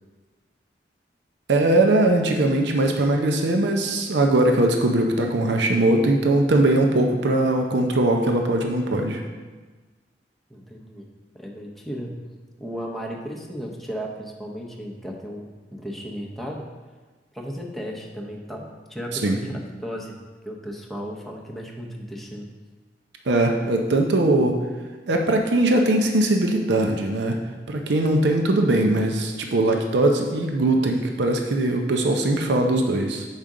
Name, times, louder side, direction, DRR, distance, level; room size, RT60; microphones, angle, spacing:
voice 1, 1.5-9.2 19.1-19.4 23.3-24.6 25.1-27.4 27.7-33.2, right 2 dB, 70° right, 3 dB, 0.6 m, -20 dB
voice 2, 10.5-11.1 11.3-12.1 12.6-16.7 17.3-20.2 20.4-22.5, equal, ahead, -1 dB, 0.8 m, -35 dB
7.2 x 5.1 x 3.7 m, 1.3 s
head